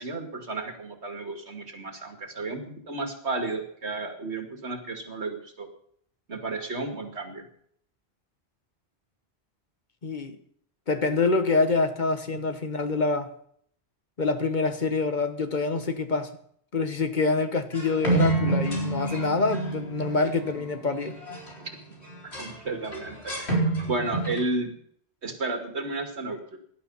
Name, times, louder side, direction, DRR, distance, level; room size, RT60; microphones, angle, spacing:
voice 1, 0.0-5.7 6.3-7.5 21.6-21.7 22.4-24.7 25.2-26.6, right 2 dB, 80° right, 2.7 m, -33 dB
voice 2, 10.0-10.4 10.9-13.3 14.2-16.3 16.7-21.2, left 3 dB, 45° left, 1.5 m, -26 dB
sound 1, 17.7-21.7 22.0-22.5 22.8-24.4, right 2 dB, 75° left, 4.7 m, -28 dB
18.0 x 11.5 x 5.6 m
omnidirectional pair, 1.1 m